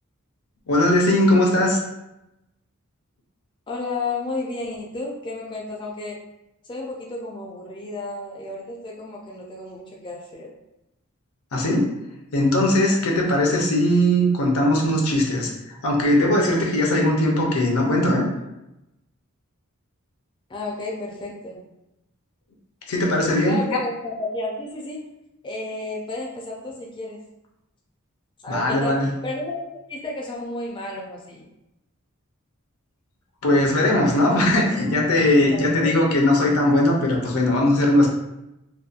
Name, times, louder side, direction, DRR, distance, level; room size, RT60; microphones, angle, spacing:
voice 1, 0.7-1.8 11.5-11.9 12.3-18.3 22.9-23.6 28.5-29.1 33.4-38.1, left 1 dB, 90° left, 0 dB, 0.6 m, -19 dB
voice 2, 3.7-6.2 6.6-10.5 13.1-13.2 20.5-21.6 23.5-25.0 25.4-27.2 28.4-31.5 35.5-35.9, left 2 dB, 20° left, -2 dB, 0.3 m, -32 dB
2.7 x 2.1 x 2.4 m, 0.90 s
head